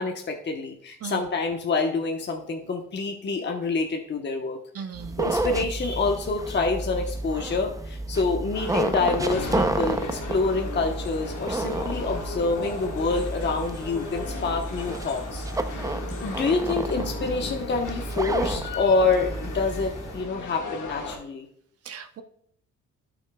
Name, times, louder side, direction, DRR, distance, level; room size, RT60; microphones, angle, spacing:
voice 1, 0.0-4.6 5.2-15.8 16.2-21.5, left 3 dB, 35° left, 2 dB, 1.1 m, -27 dB
voice 2, 4.7-5.3 21.8-22.2, right 6 dB, 50° right, 9 dB, 0.9 m, -37 dB
sound 1, 4.9-20.2, right 2 dB, 10° right, 0.6 m, -31 dB
sound 2, 8.5-21.2, left 3 dB, 75° left, 1.8 m, -37 dB
12.0 x 6.3 x 2.3 m, 0.66 s
cardioid pair, 90°, 30 cm